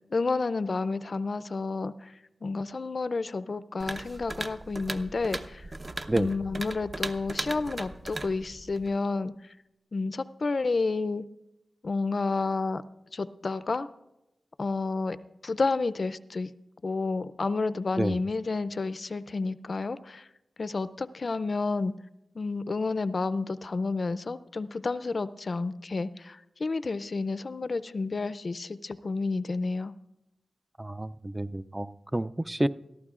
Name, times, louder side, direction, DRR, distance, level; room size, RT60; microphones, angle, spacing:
voice 1, 0.1-2.1 2.4-5.6 6.1-9.3 9.9-11.2 11.8-12.8 13.1-13.9 14.6-15.2 15.4-16.5 16.8-20.2 20.6-21.9 22.4-29.9, left 3 dB, 55° left, 15 dB, 0.4 m, -30 dB
sound 1, 3.8-9.0, right 2 dB, 40° right, 0.7 m, -38 dB
voice 2, 30.8-32.7, right 1 dB, 15° right, 12 dB, 0.3 m, -29 dB
21.0 x 14.0 x 2.4 m, 0.92 s
wide cardioid pair, 70°, 0 cm